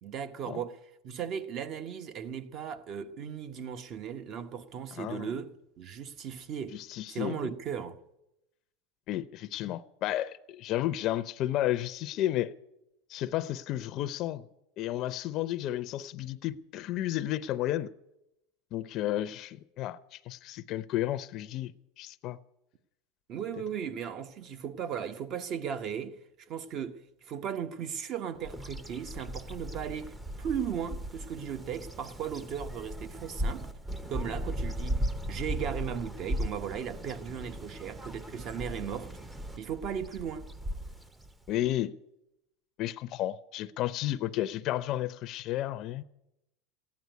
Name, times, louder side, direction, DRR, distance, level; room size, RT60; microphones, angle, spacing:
voice 1, 0.0-0.8 1.0-6.8 7.1-8.0 23.3-26.2 26.5-33.7 34.1-39.1 39.6-40.5, right 8 dB, 45° right, 1.1 m, -37 dB
voice 2, 5.0-5.3 6.7-7.4 9.1-12.5 13.1-14.5 14.8-17.9 18.7-21.7 22.0-22.4 41.5-42.0 42.8-46.0, left 13 dB, 45° left, 0.6 m, -32 dB
Bird vocalization bird call bird song, 28.4-41.7, equal, 10° right, 0.7 m, -37 dB
15.0 x 9.6 x 9.3 m
supercardioid pair, 130°, 0 cm